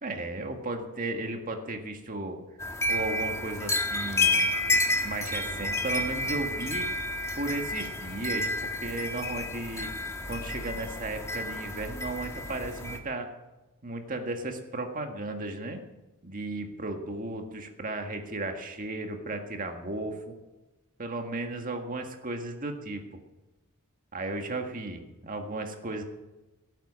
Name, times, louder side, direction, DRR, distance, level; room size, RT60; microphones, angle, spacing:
voice 1, 0.0-2.4 2.9-4.8 5.0-6.9 7.3-9.9 10.2-13.3 13.8-15.8 16.2-20.3 21.0-23.0 24.1-26.0, right 2 dB, 40° right, 4 dB, 1.8 m, -35 dB
sound 1, 2.6-13.0, left 1 dB, 15° left, 1.6 m, -30 dB
17.5 x 9.0 x 7.5 m, 1.1 s
head